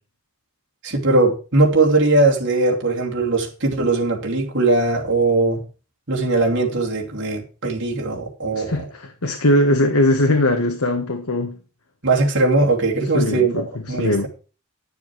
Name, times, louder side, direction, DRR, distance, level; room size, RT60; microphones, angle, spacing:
voice 1, 0.8-5.6 6.1-8.8 12.0-14.3, right 2 dB, 55° right, 2.8 m, -19 dB
voice 2, 8.5-11.6 13.1-14.3, left 1 dB, 85° left, 1.4 m, -20 dB
11.0 x 7.1 x 6.0 m
head